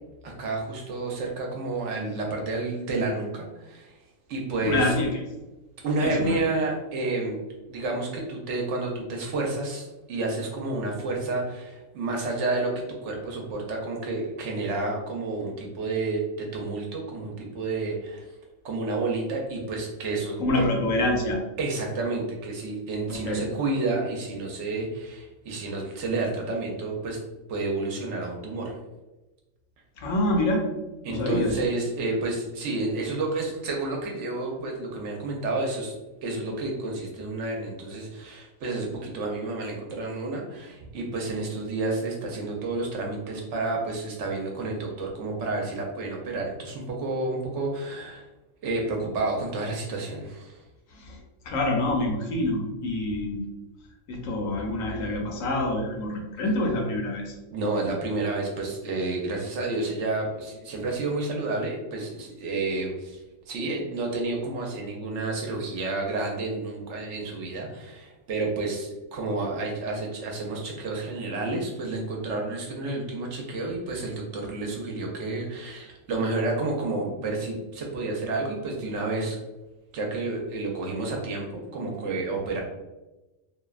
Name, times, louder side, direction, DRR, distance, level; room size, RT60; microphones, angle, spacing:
voice 1, 0.2-4.0 4.3-4.9 5.8-7.4 7.7-12.7 13.0-18.2 18.6-20.6 21.6-27.2 27.5-28.7 31.0-35.9 36.2-48.2 48.6-50.6 57.5-63.2 63.5-79.4 79.9-82.6, right 3 dB, 70° right, 0 dB, 0.8 m, -30 dB
voice 2, 4.6-5.1 6.0-6.4 20.4-21.4 23.1-23.4 30.0-30.7 31.1-31.6 50.9-51.2 51.4-53.5 54.1-57.3, left 1 dB, 80° left, 1 dB, 1.0 m, -26 dB
2.6 x 2.1 x 2.3 m, 1.1 s
omnidirectional pair, 1.4 m